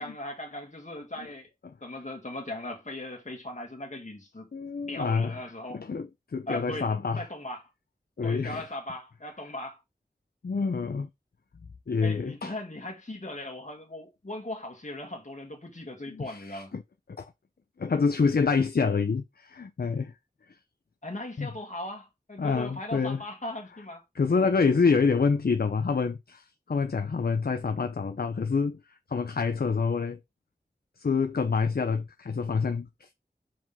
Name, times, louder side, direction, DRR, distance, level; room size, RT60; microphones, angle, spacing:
voice 1, 0.0-1.5 1.8-4.5 4.9-5.8 6.5-6.9 7.2-7.6 8.2-9.8 12.0-16.7 21.0-24.5, left 1 dB, 50° left, 2.2 m, -38 dB
voice 2, 4.5-5.4 5.7-7.3 8.2-8.7 10.4-11.1 11.9-12.5 16.1-16.8 17.2-17.3 17.8-20.1 21.4-21.5 22.4-23.2 24.1-28.8 29.1-30.2 31.0-33.1, left 5 dB, 70° left, 0.6 m, -27 dB
5.8 x 5.0 x 3.5 m
wide cardioid pair, 50°, 16 cm